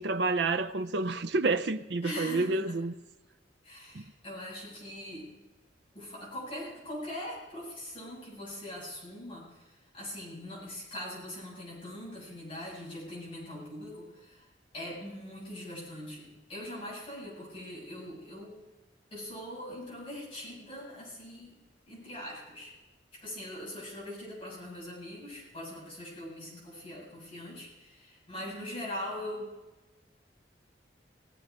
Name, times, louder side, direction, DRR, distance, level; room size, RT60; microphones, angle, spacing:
voice 1, 0.0-2.9 3.9-4.0, right 3 dB, 65° right, 0.7 m, -29 dB
voice 2, 2.0-2.8 3.6-5.3 5.9-18.6 19.1-22.7 23.1-29.5, left 1 dB, 30° left, 7.6 m, -42 dB
18.0 x 15.0 x 4.9 m
head